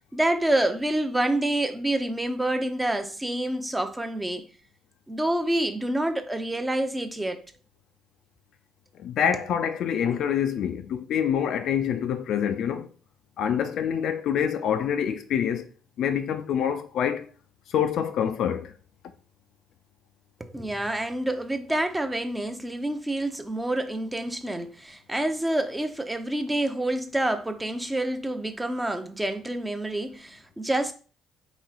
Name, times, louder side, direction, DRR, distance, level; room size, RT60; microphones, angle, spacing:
voice 1, 0.1-4.4 5.1-7.4 20.4-30.9, right 1 dB, 10° right, 0.6 m, -27 dB
voice 2, 9.0-12.9 13.4-15.7 16.0-17.3 17.7-18.7, left 8 dB, 55° left, 0.4 m, -26 dB
3.8 x 3.1 x 3.8 m
figure-of-eight pair, 50°, 0 cm